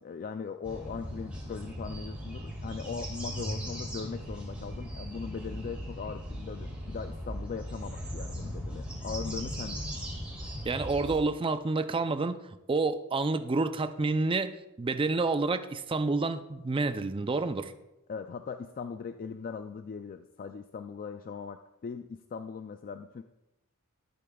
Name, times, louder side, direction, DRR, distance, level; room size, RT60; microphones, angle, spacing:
voice 1, 0.0-10.0 18.1-23.2, left 5 dB, 40° left, 8 dB, 0.3 m, -40 dB
sound 1, 0.6-11.2, equal, 5° right, 2.5 m, -38 dB
voice 2, 10.6-12.4 12.7-17.7, right 3 dB, 25° right, 10 dB, 0.4 m, -29 dB
13.5 x 8.4 x 2.3 m, 0.95 s
head